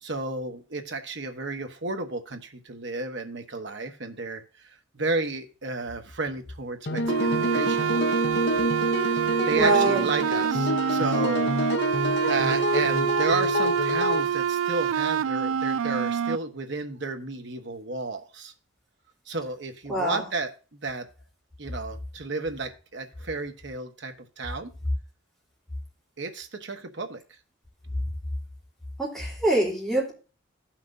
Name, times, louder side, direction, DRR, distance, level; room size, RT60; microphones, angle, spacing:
voice 1, 0.0-4.4 4.9-7.9 9.4-11.9 12.3-18.5 19.3-21.1 21.6-24.7 26.2-27.2, right 3 dB, 60° right, 5 dB, 1.1 m, -32 dB
sound 1, 6.9-14.2, left 1 dB, 55° left, 0.6 m, -27 dB
sound 2, 7.1-16.4, right 9 dB, 80° right, 0.3 m, -26 dB
voice 2, 9.6-10.0 19.9-20.2 29.0-30.1, right 2 dB, ahead, -5 dB, 3.3 m, -24 dB
16.0 x 5.8 x 2.6 m, 0.34 s
head